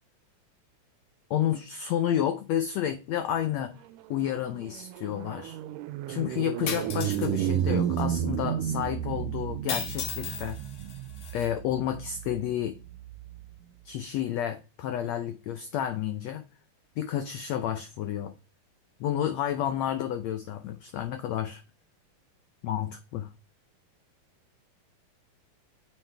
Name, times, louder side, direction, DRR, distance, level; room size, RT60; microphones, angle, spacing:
voice 1, 1.3-3.7 4.1-5.6 6.1-10.6 11.3-12.7 13.8-16.4 17.0-18.3 19.0-21.6 22.6-23.3, left 10 dB, 90° left, 1.5 m, -30 dB
sound 1, 3.9-13.4, right 11 dB, 80° right, 2.1 m, -32 dB
sound 2, 6.7-7.3 8.0-8.1 9.7-11.5, left 7 dB, 65° left, 2.9 m, -36 dB
9.1 x 7.5 x 3.4 m
omnidirectional pair, 4.0 m